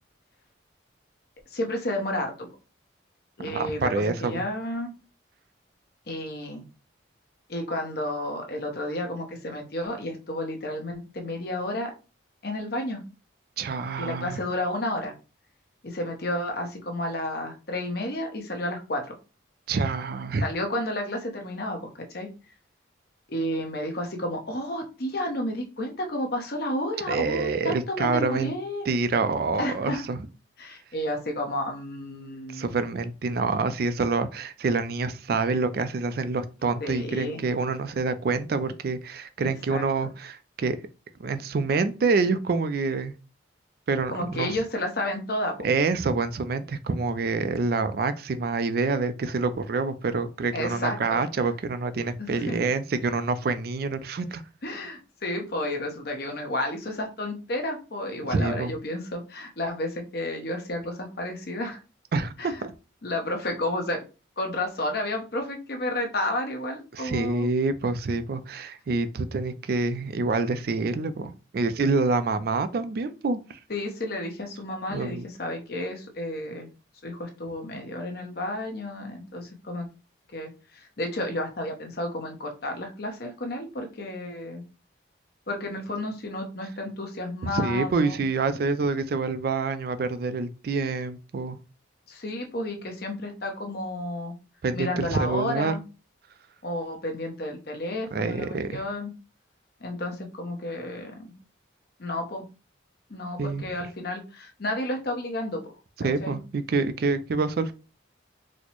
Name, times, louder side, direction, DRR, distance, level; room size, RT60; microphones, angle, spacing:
voice 1, 1.5-2.5 3.4-4.9 6.1-6.6 7.5-11.9 12.4-13.0 14.0-15.1 15.8-19.1 20.4-22.3 23.3-28.9 29.6-30.0 30.6-32.7 36.8-37.4 39.4-39.8 44.1-45.5 50.5-51.2 52.2-52.6 54.6-61.8 62.4-62.6 63.0-64.0 64.4-67.5 73.7-76.7 77.0-79.9 80.3-84.6 85.5-88.2 92.1-94.3 94.7-95.8 96.6-99.1 99.8-101.3 102.0-102.4 103.1-105.7 106.0-106.4, left 1 dB, 50° left, 0.8 m, -31 dB
voice 2, 3.5-4.4 13.6-14.4 19.7-20.5 27.1-28.5 28.9-30.2 32.5-40.8 41.2-43.1 43.9-44.5 45.6-54.4 58.3-58.7 62.1-62.7 66.9-73.6 74.9-75.2 87.4-91.6 94.6-95.7 98.1-98.8 103.4-103.7 106.0-107.7, right 4 dB, 50° right, 0.3 m, -27 dB
4.2 x 2.1 x 3.0 m
head